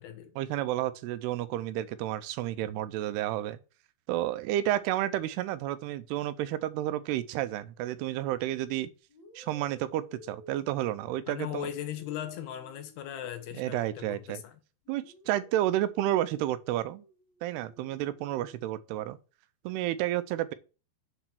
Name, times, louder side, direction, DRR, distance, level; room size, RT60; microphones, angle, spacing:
voice 1, 0.4-3.6 4.1-8.9 9.4-11.7 13.6-14.4 14.9-17.0 17.4-19.2 19.6-20.5, right 13 dB, 85° right, 2.6 m, -31 dB
sound 1, 8.0-8.3 9.1-14.4 14.8-18.8, equal, 45° left, 3.3 m, -57 dB
voice 2, 11.3-14.6, left 10 dB, 80° left, 2.9 m, -38 dB
8.0 x 4.3 x 5.9 m
omnidirectional pair, 4.7 m